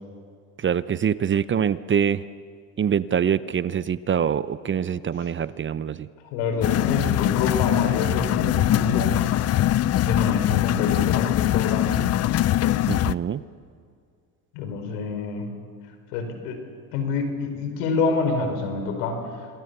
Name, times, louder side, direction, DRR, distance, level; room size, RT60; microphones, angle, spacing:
voice 1, 0.6-2.2 2.8-6.1 12.9-13.4, right 8 dB, 25° right, 16 dB, 0.6 m, -24 dB
voice 2, 6.3-9.1 10.0-12.1 14.5-15.5 16.1-16.6 16.9-19.2, left 4 dB, 85° left, 6 dB, 4.7 m, -27 dB
sound 1, 6.6-13.1, left 13 dB, 35° left, 0.5 m, -22 dB
27.0 x 22.0 x 6.8 m, 2.2 s
supercardioid pair, 100°, 44 cm